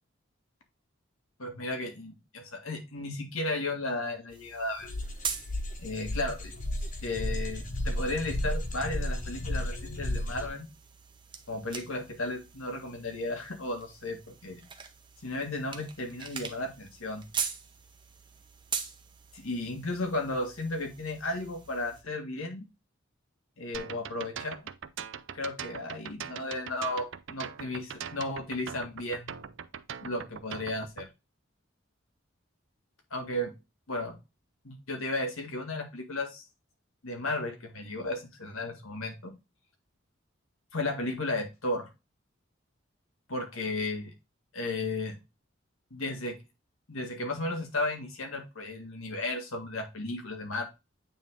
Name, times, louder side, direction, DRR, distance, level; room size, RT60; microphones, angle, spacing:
voice 1, 1.4-4.9 5.8-6.5 7.0-10.7 11.5-14.6 15.2-17.2 19.3-22.6 23.6-24.6 25.3-29.4 30.0-31.1 33.1-33.5 33.9-34.1 34.6-36.4 37.0-39.3 40.7-41.9 43.3-44.1 44.5-45.2 45.9-46.4 46.9-50.6, left 2 dB, 90° left, 4 dB, 1.8 m, -34 dB
sound 1, 4.3-22.0, right 7 dB, 25° right, 0.8 m, -43 dB
sound 2, 4.8-10.5, left 1 dB, 40° left, 1.2 m, -33 dB
sound 3, 23.7-31.1, right 7 dB, 65° right, 0.5 m, -41 dB
8.9 x 3.4 x 3.7 m, 0.25 s
head